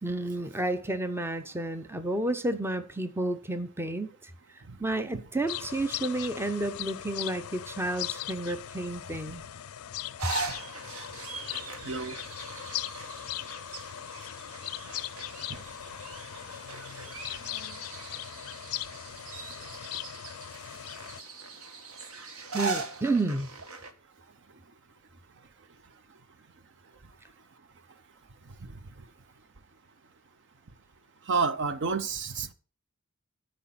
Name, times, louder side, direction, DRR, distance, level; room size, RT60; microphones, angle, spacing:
voice 1, 0.0-9.4 22.5-23.5, right 2 dB, 10° right, 0.7 m, -31 dB
sound 1, 5.5-21.2, left 12 dB, 75° left, 0.4 m, -39 dB
sound 2, 10.2-23.9, right 4 dB, 75° right, 1.4 m, -40 dB
voice 2, 11.8-12.2 15.5-15.6 28.6-29.0 31.3-32.5, right 5 dB, 55° right, 0.7 m, -30 dB
12.5 x 5.1 x 5.7 m
head